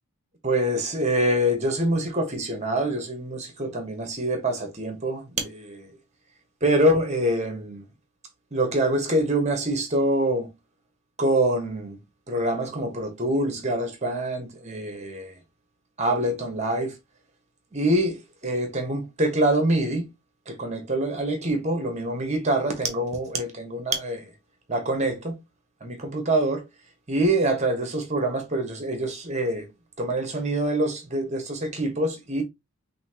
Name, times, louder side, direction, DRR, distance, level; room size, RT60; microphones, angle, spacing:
voice 1, 0.4-5.9 6.6-7.8 8.5-10.5 11.2-12.0 12.3-15.3 16.0-17.0 17.7-20.1 20.5-24.3 24.7-25.4 25.8-26.6 27.1-29.7 30.0-32.4, right 1 dB, 30° right, 1.4 m, -25 dB
5.5 x 2.9 x 2.9 m
head